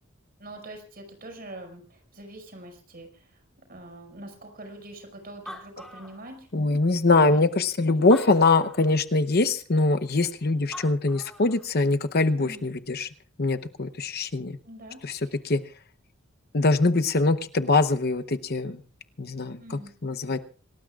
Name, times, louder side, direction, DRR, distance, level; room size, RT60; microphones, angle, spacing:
voice 1, 0.4-3.2 3.7-6.5 7.3-7.4 12.4-12.7 14.7-15.3 19.6-19.9, right 1 dB, 45° right, 4 dB, 5.6 m, -44 dB
Animal, 5.0-5.1 5.3-6.7 7.4-7.5 8.0-9.0 10.4-10.5 10.7-11.7, equal, 5° left, 4.6 m, -43 dB
voice 2, 6.5-13.1 13.4-14.6 15.0-15.2 15.4-15.6 16.5-18.8 19.2-20.4, left 3 dB, 50° left, 9 dB, 0.8 m, -23 dB
27.0 x 19.0 x 2.4 m, 0.38 s
head